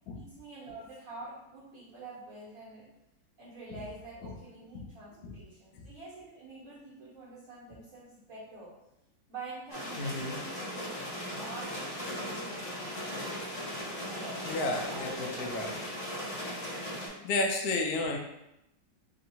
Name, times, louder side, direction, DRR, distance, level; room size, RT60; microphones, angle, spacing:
voice 1, 0.1-2.9 3.4-8.7 9.3-11.1 11.4-13.4 14.1-15.5 17.1-17.3, right 2 dB, 50° right, -10 dB, 1.6 m, -47 dB
sound 1, 9.7-17.1, equal, 45° left, 1.6 m, -38 dB
voice 2, 10.0-10.4 14.5-15.7 17.2-18.2, left 2 dB, 70° left, 1 dB, 1.0 m, -32 dB
3.6 x 2.6 x 4.2 m, 0.87 s
omnidirectional pair, 1.9 m